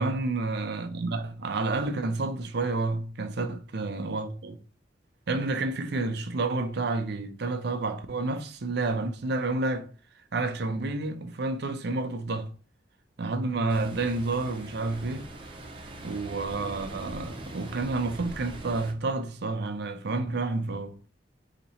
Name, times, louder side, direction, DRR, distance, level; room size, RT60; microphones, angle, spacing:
voice 1, 0.0-4.6 5.3-9.9 10.3-12.5 13.2-15.3 16.0-21.0, right 3 dB, 65° right, 0.6 m, -30 dB
Ocean, 13.7-18.9, right 1 dB, 30° right, 0.8 m, -42 dB
4.0 x 2.9 x 4.2 m
head